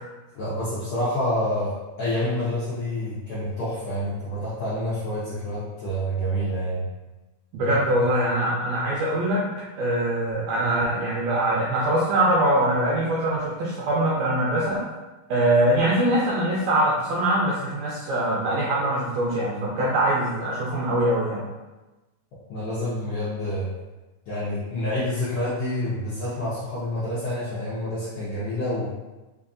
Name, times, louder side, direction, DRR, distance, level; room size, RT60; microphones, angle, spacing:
voice 1, 0.3-6.9 7.6-8.0 22.5-23.7 24.3-28.9, left 1 dB, 75° left, -11 dB, 1.4 m, -28 dB
voice 2, 7.5-9.4 9.8-14.8 15.3-21.4, right 1 dB, 80° right, -6 dB, 1.6 m, -23 dB
4.9 x 2.6 x 2.5 m, 1.1 s
omnidirectional pair, 3.8 m